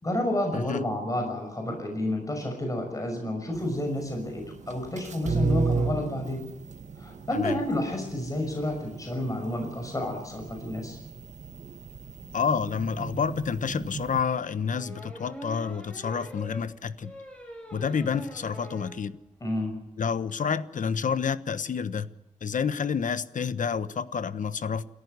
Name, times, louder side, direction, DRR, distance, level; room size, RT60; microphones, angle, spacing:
voice 1, 0.0-6.4 7.0-11.0 19.4-19.7, left 1 dB, 25° left, 3 dB, 6.0 m, -30 dB
voice 2, 0.5-0.8 7.3-7.6 12.3-17.1 17.7-19.1 20.0-22.1 22.4-24.8, left 6 dB, 70° left, 14 dB, 1.2 m, -29 dB
sound 1, 3.5-14.2, right 4 dB, 60° right, 1.6 m, -35 dB
sound 2, 14.7-19.0 19.4-19.5 19.8-19.9 20.0-20.3, right 1 dB, 10° left, 6.1 m, -43 dB
28.5 x 14.5 x 8.2 m, 0.89 s
wide cardioid pair, 115°, 14 cm